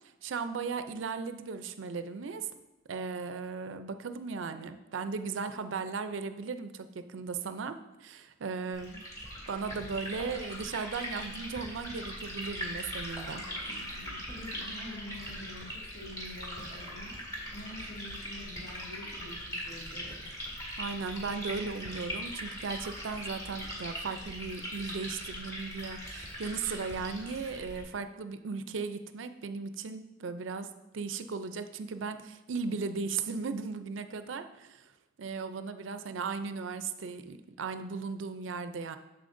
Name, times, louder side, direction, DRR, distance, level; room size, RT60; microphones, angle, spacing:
voice 1, 0.2-2.5 2.9-9.0 9.5-13.4 20.8-34.9 35.2-39.0, right 4 dB, 80° right, 10 dB, 0.5 m, -37 dB
Liquid, 8.7-27.8, equal, 15° left, 2.1 m, -41 dB
voice 2, 13.4-17.2 17.5-20.4, left 1 dB, 70° left, -5 dB, 2.4 m, -47 dB
8.5 x 7.0 x 2.6 m, 1.0 s
head